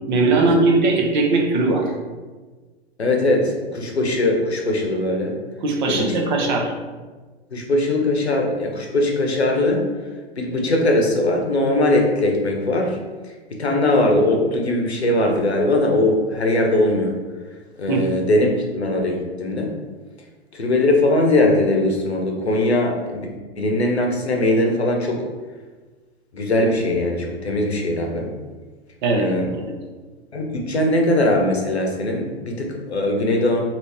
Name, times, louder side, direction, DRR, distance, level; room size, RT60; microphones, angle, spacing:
voice 1, 0.1-1.9 5.6-6.7 17.9-18.0 29.0-29.7, right 3 dB, 50° right, 2 dB, 0.6 m, -19 dB
voice 2, 3.0-5.3 5.9-6.2 6.4-6.6 7.5-9.8 10.4-13.0 13.2-17.1 17.8-19.7 20.5-23.3 23.6-25.2 26.3-28.3 29.2-29.5 30.3-33.6, left 1 dB, 85° left, 1 dB, 0.8 m, -20 dB
2.8 x 2.8 x 3.4 m, 1.3 s
figure-of-eight pair, 110°, 32 cm